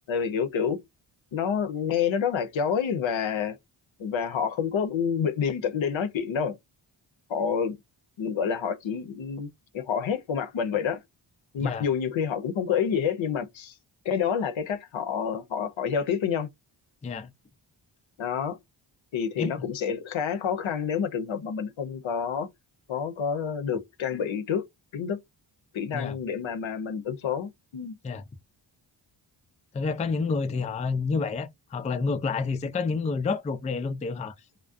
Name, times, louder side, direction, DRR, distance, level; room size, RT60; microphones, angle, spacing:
voice 1, 0.1-0.8 1.3-3.6 4.0-6.6 7.3-7.8 8.2-11.0 11.5-13.7 14.0-16.5 18.2-18.6 19.1-22.5 22.9-24.7 24.9-25.2 25.7-28.0, left 7 dB, 70° left, 0.7 m, -28 dB
voice 2, 29.7-34.3, left 4 dB, 15° left, 0.3 m, -29 dB
2.3 x 2.1 x 2.5 m
cardioid pair, 50°, 49 cm